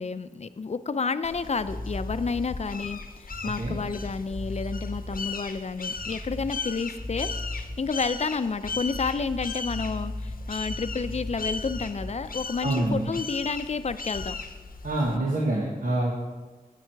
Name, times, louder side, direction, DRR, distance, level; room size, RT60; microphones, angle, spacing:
voice 1, 0.0-14.4, left 4 dB, 50° left, 12 dB, 0.5 m, -30 dB
sound 1, 1.2-15.2, left 4 dB, 85° left, 0.7 m, -37 dB
sound 2, 1.6-2.6 3.3-5.2 6.0-6.7 7.0-7.9 8.6-12.3, left 1 dB, 10° right, 1.4 m, -37 dB
voice 2, 3.4-3.8 12.6-13.1 14.8-16.1, right 1 dB, 70° right, -3 dB, 1.4 m, -26 dB
9.8 x 8.3 x 4.6 m, 1.3 s
wide cardioid pair, 85°, 14 cm